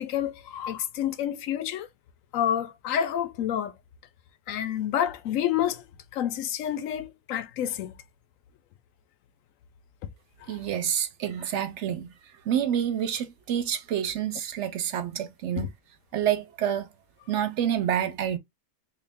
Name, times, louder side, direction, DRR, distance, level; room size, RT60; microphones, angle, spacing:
voice 1, 0.0-1.9 2.3-3.7 4.5-5.8 6.1-7.9 10.4-10.6 15.6-15.7, left 10 dB, 85° left, 1.0 m, -29 dB
voice 2, 10.5-12.1 12.5-15.7 16.1-16.9 17.3-18.4, right 9 dB, 65° right, 0.9 m, -28 dB
3.3 x 2.5 x 3.4 m
omnidirectional pair, 1.4 m